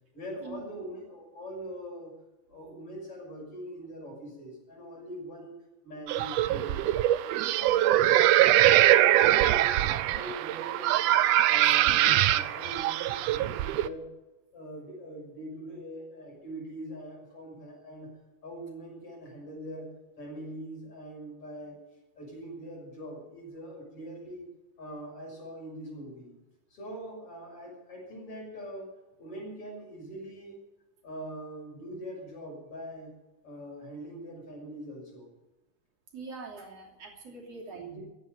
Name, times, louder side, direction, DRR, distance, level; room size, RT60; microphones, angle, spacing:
voice 1, 0.1-2.1 2.5-5.5 5.8-7.2 7.5-11.0 11.4-14.1 14.5-18.1 18.4-19.9 20.2-21.8 22.2-24.5 24.8-26.4 26.7-28.9 29.2-30.6 31.0-33.1 33.4-35.3 37.3-38.0, equal, 45° left, -1 dB, 7.5 m, -42 dB
sound 1, 6.1-13.9, right 13 dB, 90° right, 1.4 m, -23 dB
voice 2, 36.1-38.0, right 4 dB, 50° right, 0 dB, 3.9 m, -43 dB
15.0 x 10.0 x 9.3 m, 1.0 s
omnidirectional pair, 3.6 m